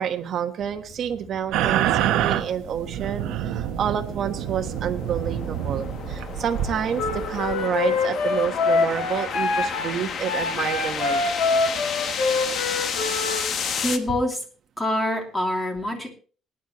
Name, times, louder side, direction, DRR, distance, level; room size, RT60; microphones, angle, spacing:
voice 1, 0.0-11.2, right 8 dB, 50° right, 6 dB, 1.4 m, -29 dB
sound 1, 0.6-14.0, left 6 dB, 45° left, 1.2 m, -33 dB
sound 2, 1.5-7.5, right 11 dB, 90° right, 1.1 m, -27 dB
Wind instrument woodwind instrument, 6.9-13.5, left 4 dB, 70° left, 2.4 m, -25 dB
voice 2, 13.7-14.4 14.8-16.1, left 1 dB, 15° left, 2 dB, 2.9 m, -25 dB
19.5 x 10.0 x 3.1 m, 0.38 s
cardioid pair, 150°, 0 cm